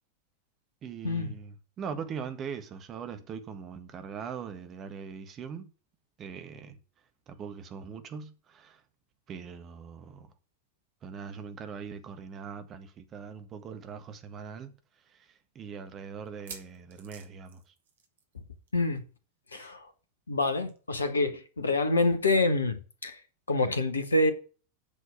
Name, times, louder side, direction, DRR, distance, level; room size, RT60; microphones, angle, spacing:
voice 1, 0.8-5.7 6.2-6.8 7.3-8.8 9.3-10.3 11.0-14.7 15.1-17.6 19.5-19.7, right 6 dB, 30° right, 1.5 m, -41 dB
sound 1, 13.6-13.7 14.0-14.1 14.7-14.8 16.2-18.4 18.7-18.9 19.1-19.2 20.7-20.8, right 6 dB, 60° right, 2.0 m, -49 dB
voice 2, 18.7-19.0 19.5-19.9 20.3-23.2 23.5-24.3, left 2 dB, 75° left, 1.4 m, -27 dB
8.9 x 6.2 x 7.1 m
figure-of-eight pair, 90°, 0 cm